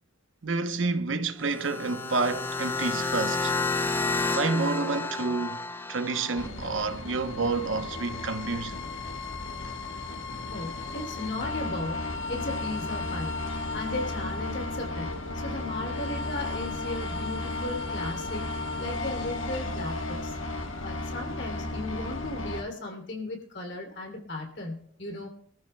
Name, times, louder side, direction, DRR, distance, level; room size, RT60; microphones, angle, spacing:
voice 1, 0.4-3.5 4.3-5.6 5.9-8.8, right 3 dB, 75° right, 0.9 m, -29 dB
sound 1, 1.4-6.5, left 3 dB, 10° left, 0.5 m, -30 dB
sound 2, 6.4-22.6, left 2 dB, 90° left, 1.3 m, -34 dB
voice 2, 10.5-13.3 13.7-18.4 18.8-20.4 20.8-25.3, left 2 dB, 65° left, 3.0 m, -36 dB
23.5 x 14.0 x 2.3 m
head